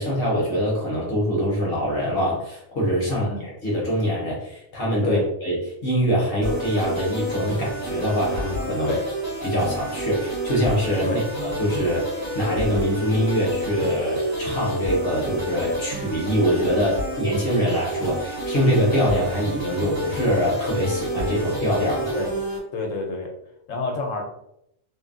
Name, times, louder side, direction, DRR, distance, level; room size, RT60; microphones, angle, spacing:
voice 1, 0.0-9.0 9.4-22.1, equal, 50° left, -4 dB, 0.9 m, -24 dB
voice 2, 3.1-3.5 5.0-5.2 8.8-9.1 11.0-11.2 22.1-22.3 22.7-23.3 23.7-24.2, left 3 dB, 75° left, 3 dB, 1.0 m, -28 dB
sound 1, 6.4-22.6, right 1 dB, 55° right, 1.5 m, -29 dB
3.2 x 2.2 x 2.4 m, 0.76 s
omnidirectional pair, 1.4 m